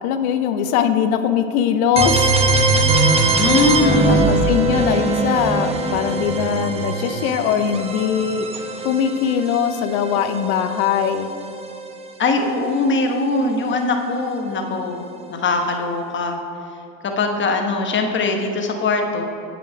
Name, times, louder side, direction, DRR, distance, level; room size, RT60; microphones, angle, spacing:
voice 1, 0.0-2.3 4.1-8.5 8.8-11.3, left 8 dB, 80° left, 9 dB, 0.7 m, -21 dB
sound 1, 2.0-11.7, right 3 dB, 15° right, 0.8 m, -21 dB
voice 2, 3.3-4.2 12.2-15.0 15.3-16.4 17.0-19.2, left 3 dB, 25° left, 3 dB, 1.1 m, -21 dB
8.0 x 7.7 x 5.1 m, 2.8 s
supercardioid pair, 120°, 43 cm